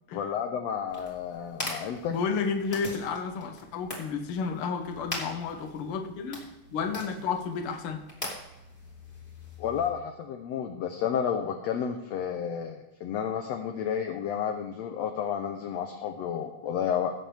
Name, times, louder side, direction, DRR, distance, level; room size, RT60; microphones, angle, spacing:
voice 1, 0.1-2.2 9.6-17.1, left 8 dB, 70° left, 4 dB, 1.7 m, -31 dB
sound 1, 0.9-9.9, left 2 dB, 20° left, 2.2 m, -42 dB
voice 2, 2.1-6.4 6.7-8.0, left 5 dB, 55° left, 5 dB, 1.7 m, -31 dB
17.0 x 7.7 x 3.4 m, 0.98 s
omnidirectional pair, 3.7 m